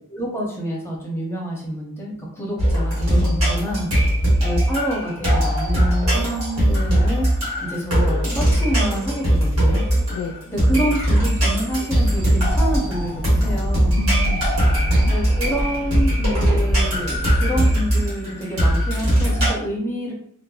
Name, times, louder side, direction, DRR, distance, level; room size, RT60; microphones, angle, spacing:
voice 1, 0.1-3.9 4.4-7.2 7.6-9.8 10.5-14.0 15.1-20.1, equal, 10° left, -2 dB, 0.6 m, -27 dB
sound 1, 2.6-19.5, equal, 80° right, 1.3 m, -20 dB
voice 2, 3.2-4.0 4.4-4.6 10.1-10.4 14.0-15.1, left 4 dB, 85° left, 1 dB, 0.3 m, -33 dB
sound 2, 12.1-17.3, equal, 35° right, 0.4 m, -27 dB
3.0 x 2.1 x 2.3 m, 0.65 s
head